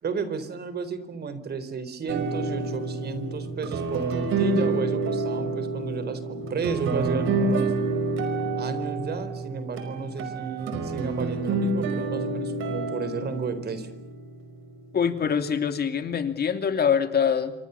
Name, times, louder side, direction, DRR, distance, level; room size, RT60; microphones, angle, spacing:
voice 1, 0.0-7.7 8.6-13.9, right 5 dB, 55° right, 12 dB, 4.2 m, -33 dB
sound 1, 2.1-14.6, right 3 dB, 80° right, 5.1 m, -28 dB
voice 2, 14.9-17.5, left 7 dB, 55° left, 8 dB, 2.8 m, -24 dB
27.5 x 25.5 x 7.1 m, 0.80 s
cardioid pair, 90°, 20 cm